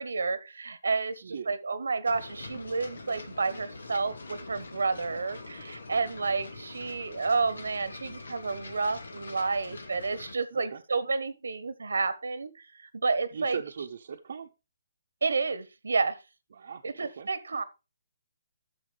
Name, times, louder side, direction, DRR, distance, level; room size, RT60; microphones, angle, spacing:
voice 1, 0.0-13.6 15.2-16.2 16.8-17.6, right 4 dB, 90° right, 1.1 m, -30 dB
voice 2, 1.2-1.5 10.5-10.8 13.3-14.5 16.5-17.3, right 6 dB, 55° right, 0.7 m, -39 dB
sound 1, 2.1-10.4, left 3 dB, 90° left, 1.8 m, -44 dB
11.0 x 6.9 x 3.4 m
hypercardioid pair, 165°, 0 cm